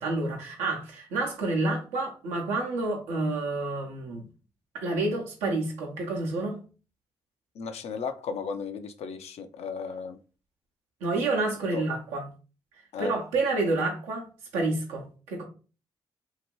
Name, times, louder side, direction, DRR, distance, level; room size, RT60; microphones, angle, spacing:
voice 1, 0.0-4.2 4.7-6.6 11.0-12.3 13.0-14.2 14.5-15.4, right 2 dB, 90° right, 0.8 m, -29 dB
voice 2, 7.6-10.2 11.7-11.8 12.9-13.1, left 5 dB, 65° left, 0.4 m, -35 dB
2.8 x 2.5 x 2.9 m
hypercardioid pair, 45°, 12 cm